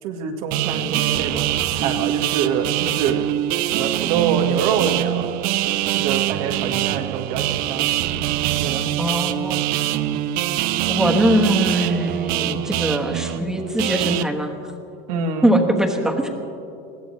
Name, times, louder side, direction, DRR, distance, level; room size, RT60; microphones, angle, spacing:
voice 1, 0.0-3.3 3.6-5.4 5.9-7.9 8.6-8.9 15.1-15.5, right 6 dB, 80° right, 3 dB, 1.7 m, -25 dB
sound 1, 0.5-14.2, right 14 dB, 50° right, 0.5 m, -23 dB
voice 2, 9.0-9.6 10.9-14.5 15.4-16.3, equal, 5° right, 2 dB, 1.2 m, -21 dB
20.5 x 16.0 x 3.2 m, 2.7 s
cardioid pair, 160°, 19 cm